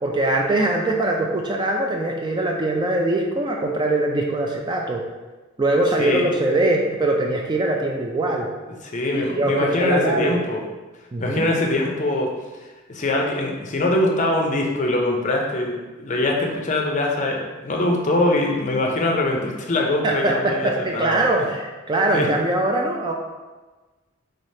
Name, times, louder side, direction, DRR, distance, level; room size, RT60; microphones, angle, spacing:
voice 1, 0.0-5.0 5.6-8.5 9.1-10.4 11.1-11.5 20.0-23.1, right 2 dB, 20° right, 0 dB, 0.3 m, -22 dB
voice 2, 8.9-10.6 11.2-12.3 12.9-21.2 22.1-22.3, left 2 dB, 35° left, 1 dB, 0.5 m, -23 dB
3.8 x 3.2 x 2.7 m, 1.2 s
head